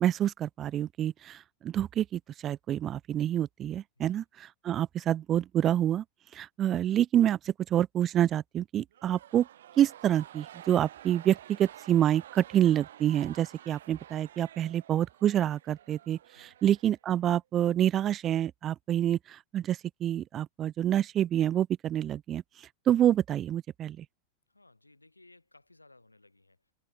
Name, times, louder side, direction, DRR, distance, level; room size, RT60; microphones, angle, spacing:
voice 1, 0.0-6.0 6.3-9.5 9.8-22.4 22.9-24.0, right 11 dB, 30° right, 0.3 m, -27 dB
sound 1, 8.9-17.4, right 11 dB, 60° right, 1.8 m, -50 dB
voice 2, 24.5-26.7, left 2 dB, 85° left, 3.9 m, -60 dB
figure-of-eight pair, 90°, 0 cm